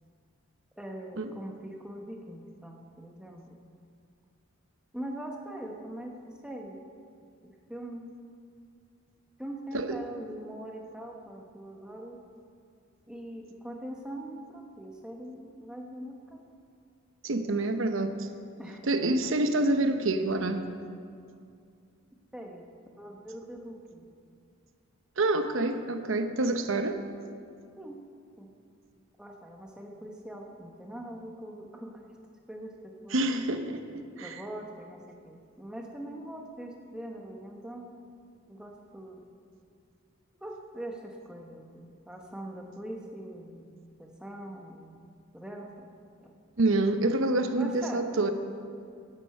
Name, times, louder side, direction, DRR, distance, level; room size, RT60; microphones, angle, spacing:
voice 1, 0.8-3.6 4.9-6.1 6.4-6.8 7.4-8.1 9.4-12.2 13.1-16.4 18.6-19.3 22.3-22.6 23.0-24.0 27.8-28.0 28.4-28.5 29.2-32.1 32.5-33.3 34.2-38.0 38.5-39.2 40.4-43.6 44.0-45.0 45.3-45.9 46.2-46.3 47.6-48.3, right 1 dB, 5° right, 0 dB, 1.0 m, -42 dB
voice 2, 17.2-18.3 18.9-20.6 25.2-27.0 33.1-33.8 34.2-34.3 46.6-48.3, right 2 dB, 70° right, 8 dB, 0.8 m, -27 dB
10.5 x 9.8 x 6.7 m, 2.3 s
head